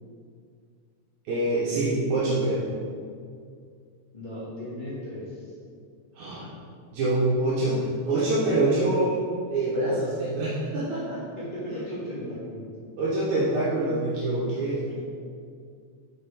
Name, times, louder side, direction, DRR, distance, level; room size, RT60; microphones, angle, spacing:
voice 1, 1.3-2.6 6.2-6.5 6.9-9.2 9.5-11.2 13.0-14.7, right 2 dB, 75° right, -8 dB, 2.3 m, -25 dB
voice 2, 4.1-5.5 11.4-12.7 14.9-15.0, equal, 40° left, -9 dB, 0.6 m, -36 dB
7.1 x 4.4 x 3.3 m, 2.2 s
omnidirectional pair, 3.4 m